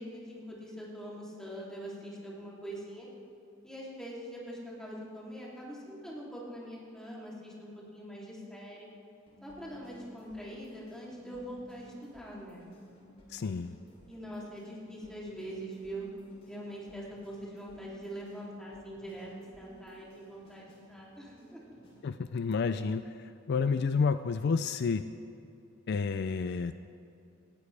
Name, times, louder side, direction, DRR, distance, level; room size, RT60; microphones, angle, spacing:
voice 1, 0.0-3.1 3.6-8.9 9.4-12.7 14.1-16.1 16.5-19.3 19.6-21.7, equal, 5° left, -6 dB, 2.9 m, -43 dB
sound 1, 9.3-22.2, equal, 30° left, 3.2 m, -56 dB
voice 2, 13.3-13.8 22.0-25.0 25.9-26.7, left 5 dB, 55° left, 11 dB, 0.4 m, -30 dB
19.0 x 14.5 x 3.4 m, 2.7 s
head